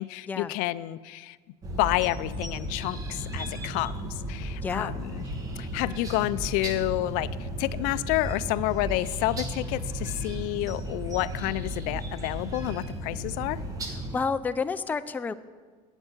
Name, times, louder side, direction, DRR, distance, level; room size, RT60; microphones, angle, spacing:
voice 1, 0.0-1.4 1.8-5.2 5.6-13.6, left 17 dB, 75° left, 16 dB, 0.4 m, -29 dB
sound 1, 1.6-14.2, equal, 25° right, 1.6 m, -35 dB
voice 2, 4.6-4.9 14.1-15.3, left 5 dB, 10° left, 11 dB, 0.4 m, -29 dB
8.9 x 8.1 x 8.8 m, 1.5 s
cardioid pair, 145°, 14 cm